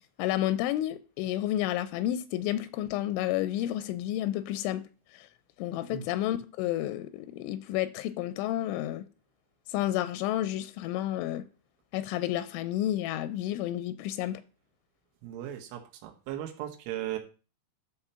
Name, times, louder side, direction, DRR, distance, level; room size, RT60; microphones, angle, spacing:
voice 1, 0.2-4.8 5.1-5.3 5.6-9.1 9.7-11.4 11.9-14.4, left 13 dB, 85° left, 3.0 m, -31 dB
voice 2, 15.2-17.2, right 12 dB, 90° right, 3.8 m, -37 dB
13.0 x 4.3 x 5.6 m
omnidirectional pair, 5.4 m